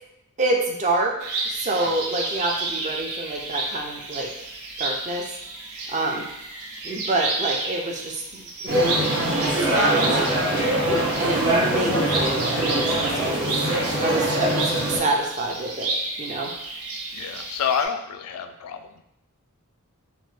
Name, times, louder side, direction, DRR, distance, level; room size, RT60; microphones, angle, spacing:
voice 1, 0.4-1.1 1.5-4.5 4.8-5.3 5.9-6.3 6.8-10.3 10.8-13.6 14.0-15.9 16.2-16.5, right 2 dB, 35° right, 0 dB, 0.5 m, -27 dB
sound 1, 1.2-17.8, right 3 dB, 85° right, 0.6 m, -32 dB
sound 2, 8.7-15.0, right 1 dB, 55° right, 0.9 m, -23 dB
voice 2, 17.1-19.0, left 7 dB, 80° left, 11 dB, 0.3 m, -28 dB
2.9 x 2.1 x 3.2 m, 0.81 s
head